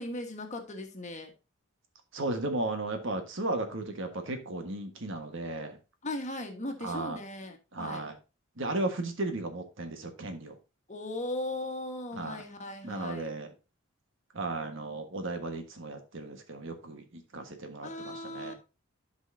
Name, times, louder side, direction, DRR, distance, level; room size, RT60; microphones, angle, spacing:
voice 1, 0.0-1.3 6.0-8.1 10.9-13.3 17.8-18.5, left 1 dB, 35° left, 5 dB, 1.4 m, -38 dB
voice 2, 2.1-5.8 6.8-7.2 7.7-8.1 8.6-10.5 12.1-12.4 12.8-13.5 14.3-18.5, right 2 dB, 60° right, 6 dB, 1.5 m, -35 dB
12.0 x 5.5 x 2.7 m, 0.30 s
head